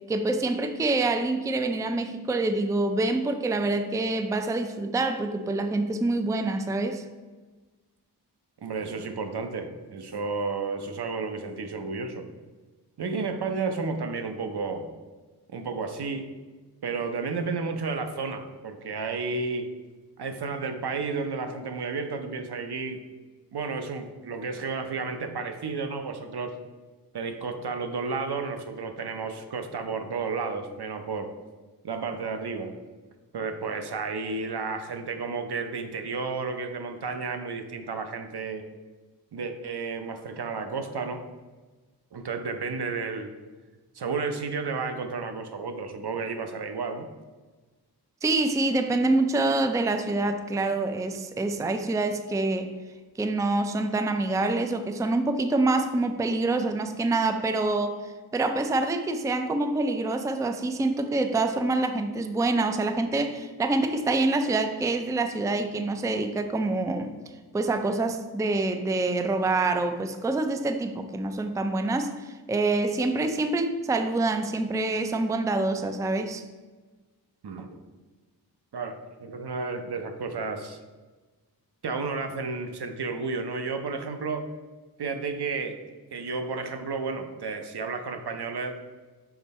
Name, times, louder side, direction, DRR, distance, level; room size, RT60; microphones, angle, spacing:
voice 1, 0.1-7.0 48.2-52.7 53.2-67.1 67.5-76.4, right 2 dB, 10° right, 7 dB, 0.4 m, -26 dB
voice 2, 8.6-12.3 13.0-14.9 15.5-16.3 16.8-19.7 20.2-23.0 23.5-26.5 27.1-31.3 31.8-32.7 33.3-38.6 39.3-41.2 42.1-43.3 43.9-47.1 77.4-77.7 78.7-80.8 81.8-84.5 85.0-85.8 86.1-88.8, right 4 dB, 70° right, 6 dB, 0.8 m, -32 dB
5.9 x 4.4 x 4.2 m, 1.3 s
wide cardioid pair, 90°, 40 cm